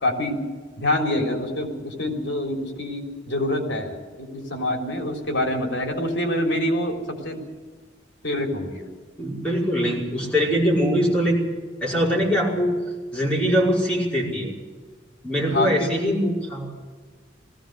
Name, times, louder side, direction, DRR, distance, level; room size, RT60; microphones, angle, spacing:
voice 1, 0.0-0.4 0.8-7.4 8.2-8.9 15.5-15.9, left 1 dB, 70° left, 3 dB, 3.8 m, -26 dB
voice 2, 9.2-11.4 11.8-12.8 13.1-14.5 15.2-16.7, equal, 5° left, -4 dB, 5.5 m, -22 dB
20.0 x 16.5 x 8.1 m, 1.4 s
head